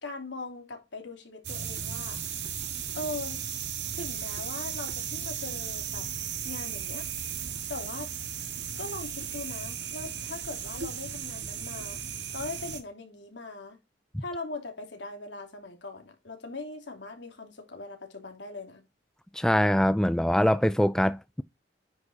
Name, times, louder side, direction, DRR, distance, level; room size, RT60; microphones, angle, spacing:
voice 1, 0.0-2.2 2.9-3.4 3.9-6.1 6.4-7.1 7.7-8.1 8.8-12.0 12.3-13.8 14.2-18.8, left 2 dB, 75° left, 3.0 m, -40 dB
sound 1, 1.4-12.8, right 8 dB, 70° right, 1.9 m, -35 dB
voice 2, 19.3-21.4, equal, 5° left, 0.3 m, -23 dB
9.8 x 4.2 x 4.6 m
head